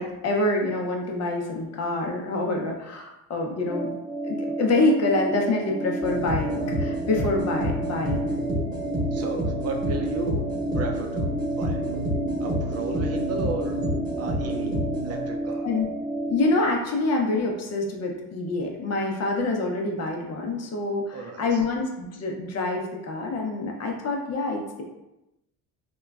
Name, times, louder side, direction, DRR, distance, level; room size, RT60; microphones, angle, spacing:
voice 1, 0.0-3.9 4.2-8.2 15.6-15.9 16.1-24.8, left 2 dB, 45° left, 1 dB, 0.6 m, -26 dB
sound 1, 3.7-16.5, right 2 dB, 5° left, 0.8 m, -31 dB
sound 2, 6.0-15.5, equal, 10° right, 1.1 m, -29 dB
voice 2, 9.1-10.5 10.7-11.8 12.4-13.7 14.2-14.7 15.0-15.7 21.1-21.6, right 3 dB, 45° right, 2 dB, 0.5 m, -33 dB
2.9 x 2.2 x 2.3 m, 0.94 s
supercardioid pair, 80°, 37 cm